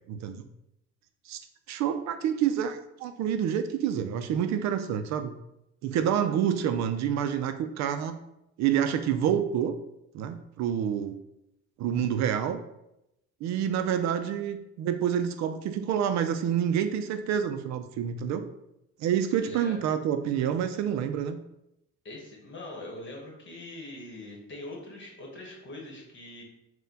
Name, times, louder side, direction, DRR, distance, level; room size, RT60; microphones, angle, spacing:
voice 1, 0.1-0.4 1.3-1.4 1.7-5.4 5.8-8.2 8.6-9.8 10.1-11.2 11.8-12.6 13.4-18.5 19.0-21.4, right 9 dB, 65° right, 9 dB, 0.4 m, -28 dB
voice 2, 19.4-19.8 22.0-26.4, left 2 dB, 40° left, 0 dB, 1.3 m, -42 dB
4.2 x 2.2 x 3.9 m, 0.85 s
cardioid pair, 105°, 30 cm